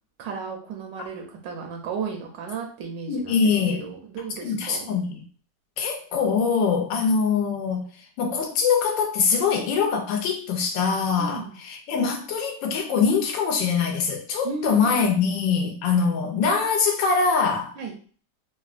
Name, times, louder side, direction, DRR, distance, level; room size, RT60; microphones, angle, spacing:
voice 1, 0.2-4.9 11.2-11.6 14.4-15.2 17.8-18.0, right 5 dB, 85° right, 2 dB, 1.3 m, -35 dB
voice 2, 3.1-3.9 4.4-5.2 5.8-7.8 8.2-17.8, left 5 dB, 90° left, 2 dB, 1.3 m, -23 dB
3.5 x 2.2 x 2.4 m, 0.43 s
omnidirectional pair, 1.9 m